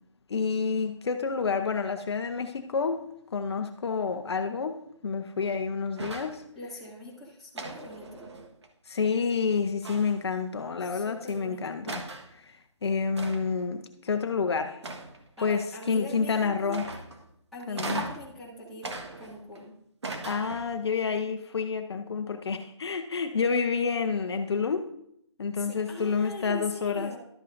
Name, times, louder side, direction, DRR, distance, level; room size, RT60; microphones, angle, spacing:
voice 1, 0.3-3.0 3.3-4.8 5.0-6.4 8.9-12.0 12.3-14.8 15.4-16.8 17.7-18.0 20.3-24.9 25.4-27.1, left 5 dB, 60° left, 6 dB, 0.8 m, -29 dB
sound 1, 6.0-6.4 7.5-8.7 9.8-10.3 11.3-11.4 11.9-12.3 13.2-13.6 14.8-15.4 16.7-17.3 17.8-18.3 18.8-19.6 20.0-20.8, right 3 dB, 65° right, 1.4 m, -38 dB
voice 2, 6.5-8.3 10.8-11.8 15.4-16.8 17.5-19.7 25.6-27.2, left 1 dB, ahead, -8 dB, 1.9 m, -42 dB
12.5 x 8.3 x 2.6 m, 0.74 s
figure-of-eight pair, 155°, 16 cm